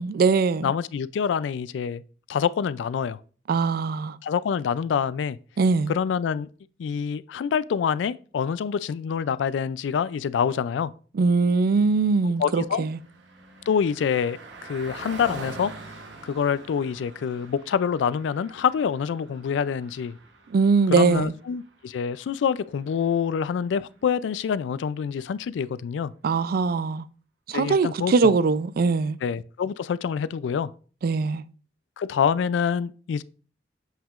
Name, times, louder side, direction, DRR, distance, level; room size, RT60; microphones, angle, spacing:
voice 1, 0.0-0.7 3.5-4.2 5.6-5.9 11.1-13.0 20.5-21.3 26.2-27.0 27.5-29.2 31.0-31.4, right 4 dB, 55° right, 0.4 m, -21 dB
voice 2, 0.6-2.0 2.3-3.2 4.2-5.4 5.9-6.5 6.8-10.9 12.4-12.8 13.7-15.7 16.2-20.2 20.9-26.1 27.5-28.4 29.2-30.7 32.0-33.2, left 7 dB, 90° left, 0.3 m, -26 dB
Car passing by, 12.2-24.0, right 3 dB, 80° right, 1.0 m, -45 dB
7.4 x 5.7 x 2.4 m
head